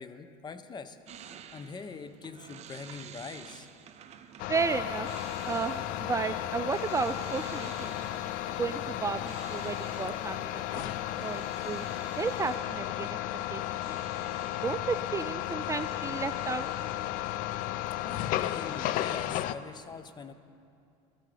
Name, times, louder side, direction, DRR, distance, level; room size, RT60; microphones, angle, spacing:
voice 1, 0.0-3.7 18.0-20.3, left 5 dB, 30° left, 11 dB, 0.8 m, -43 dB
sound 1, 1.1-18.2 18.5-19.3, right 8 dB, 45° right, 0.8 m, -52 dB
sound 2, 4.4-19.6, left 13 dB, 65° left, 0.5 m, -34 dB
voice 2, 4.5-5.1 5.4-7.9 8.6-9.2 9.5-11.8 12.2-13.1 13.5-13.9 14.6-16.7, right 5 dB, 20° right, 10 dB, 0.4 m, -33 dB
sound 3, 4.6-12.6, left 7 dB, 80° left, 1.2 m, -52 dB
18.5 x 13.5 x 3.4 m, 2.5 s
supercardioid pair, 100°, 15 cm